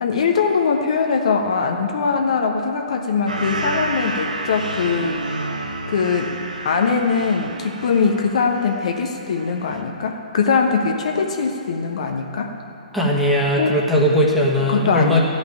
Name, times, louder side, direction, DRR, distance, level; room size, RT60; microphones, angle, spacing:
voice 1, 0.0-5.2 5.9-6.4 6.6-12.5 13.6-13.7 14.7-15.2, left 5 dB, 55° left, 3 dB, 1.1 m, -21 dB
sound 1, 3.3-9.0 9.4-9.8, right 2 dB, 75° right, 1.1 m, -29 dB
voice 2, 12.9-15.2, left 1 dB, ahead, -5 dB, 1.5 m, -18 dB
14.5 x 5.5 x 9.2 m, 2.9 s
figure-of-eight pair, 120°, 4 cm